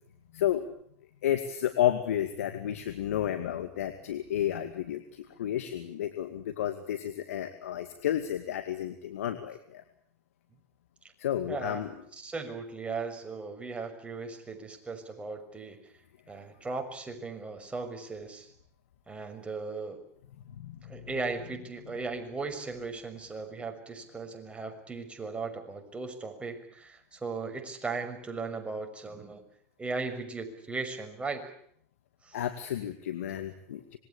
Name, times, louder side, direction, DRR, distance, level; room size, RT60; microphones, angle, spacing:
voice 1, 0.3-0.6 1.2-9.8 11.2-11.9 20.6-20.9 32.3-34.0, left 11 dB, 80° left, 8 dB, 2.3 m, -31 dB
voice 2, 11.5-11.8 12.2-15.8 16.3-18.5 19.1-20.0 20.8-29.4 29.8-31.4 32.2-32.4, right 4 dB, 15° right, 5 dB, 6.2 m, -37 dB
26.5 x 22.0 x 8.5 m, 0.65 s
hypercardioid pair, 100°, 8 cm